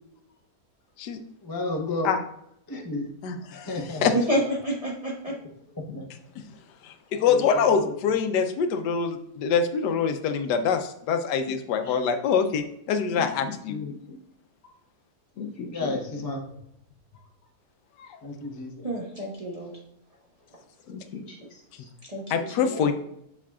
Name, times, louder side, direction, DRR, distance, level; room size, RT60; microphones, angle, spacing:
voice 1, 1.4-2.1 2.7-3.1 3.5-4.1 5.9-6.1 7.3-7.8 15.7-16.4 18.2-18.9, left 2 dB, 20° left, 1 dB, 0.5 m, -32 dB
voice 2, 3.2-3.7 4.0-4.1 6.8-13.8 18.0-18.2 22.3-22.9, left 6 dB, 80° left, 8 dB, 1.2 m, -25 dB
voice 3, 4.1-5.3 18.8-19.7 21.1-21.5 22.0-22.9, right 1 dB, 25° right, -3 dB, 0.9 m, -29 dB
voice 4, 13.1-14.2 15.4-15.9 20.9-21.9, left 5 dB, 65° left, 1 dB, 0.8 m, -38 dB
7.2 x 5.8 x 2.3 m, 0.76 s
omnidirectional pair, 1.8 m